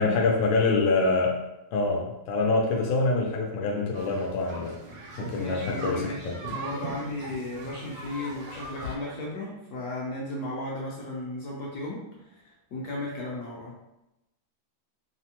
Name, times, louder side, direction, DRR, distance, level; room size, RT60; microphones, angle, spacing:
voice 1, 0.0-1.4 1.7-4.7 5.2-6.4, left 3 dB, 85° left, 0 dB, 1.3 m, -25 dB
sound 1, 3.9-9.0, right 2 dB, 75° right, 1.3 m, -39 dB
voice 2, 5.3-12.0 12.3-12.4 12.7-13.7, left 1 dB, 65° left, -4 dB, 1.0 m, -35 dB
3.4 x 2.0 x 2.8 m, 0.92 s
omnidirectional pair, 2.1 m